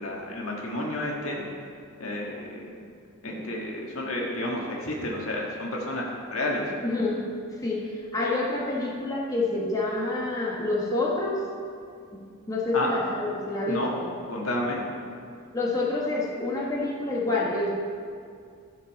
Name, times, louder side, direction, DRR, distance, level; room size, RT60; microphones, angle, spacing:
voice 1, 0.0-1.4 2.0-2.8 3.2-6.6 12.7-12.9 13.7-13.9 14.3-14.8, left 1 dB, 75° left, -2 dB, 1.7 m, -31 dB
voice 2, 3.2-3.5 6.8-7.2 7.6-11.4 12.1-12.2 12.5-14.1 15.5-17.7, left 2 dB, 15° left, -5 dB, 1.4 m, -28 dB
14.0 x 5.4 x 5.4 m, 2.2 s
head